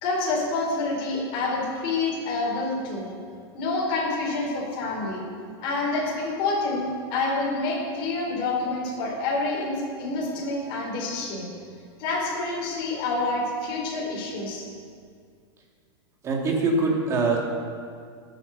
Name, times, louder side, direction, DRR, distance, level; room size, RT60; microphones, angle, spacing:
voice 1, 0.0-3.1 3.5-5.2 5.6-11.5 12.0-14.7, left 3 dB, 40° left, -4 dB, 4.1 m, -27 dB
voice 2, 16.2-17.4, right 3 dB, 20° right, -1 dB, 2.6 m, -23 dB
18.5 x 9.1 x 6.9 m, 2.2 s
supercardioid pair, 160°, 14 cm